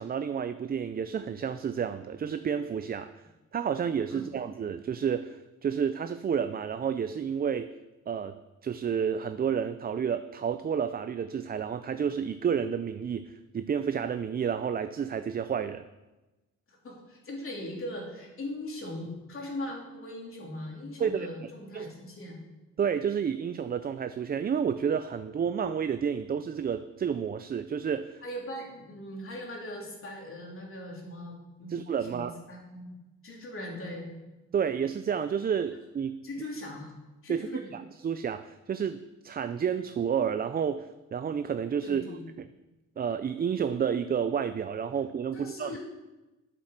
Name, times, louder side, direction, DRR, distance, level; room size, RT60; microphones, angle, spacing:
voice 1, 0.0-3.1 3.5-7.7 8.1-8.4 8.6-15.9 21.0-21.3 21.7-21.9 22.8-28.2 31.7-32.3 34.5-36.2 37.3-42.0 43.0-45.8, right 7 dB, 30° right, 10 dB, 0.4 m, -30 dB
voice 2, 16.7-22.4 28.2-31.8 32.1-32.9 33.2-34.1 36.2-36.9 37.2-37.7 41.8-42.3 45.3-45.8, left 1 dB, 45° left, -1 dB, 3.3 m, -40 dB
9.1 x 7.4 x 6.5 m, 1.1 s
cardioid pair, 90°, 30 cm